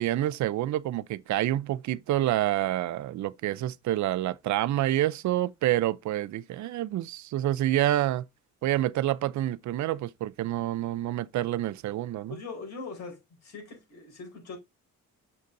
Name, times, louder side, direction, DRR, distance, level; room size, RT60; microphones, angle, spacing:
voice 1, 0.0-8.2 8.6-12.4, right 14 dB, 70° right, 0.6 m, -28 dB
voice 2, 12.3-14.6, left 4 dB, 65° left, 4.5 m, -41 dB
6.7 x 6.6 x 2.6 m
cardioid pair, 90°, 30 cm